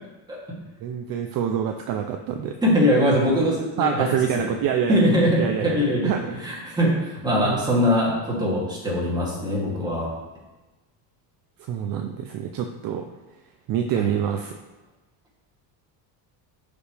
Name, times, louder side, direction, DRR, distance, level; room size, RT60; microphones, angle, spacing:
voice 1, 0.8-2.6 3.8-5.0 5.4-6.2 7.4-7.7 11.7-13.1 13.7-14.5, right 8 dB, 50° right, 5 dB, 0.6 m, -26 dB
voice 2, 2.6-4.1 4.3-4.4 4.9-10.1 14.0-14.1, equal, 10° right, -7 dB, 2.6 m, -22 dB
11.5 x 5.1 x 3.3 m, 1.1 s
cardioid pair, 155°, 45 cm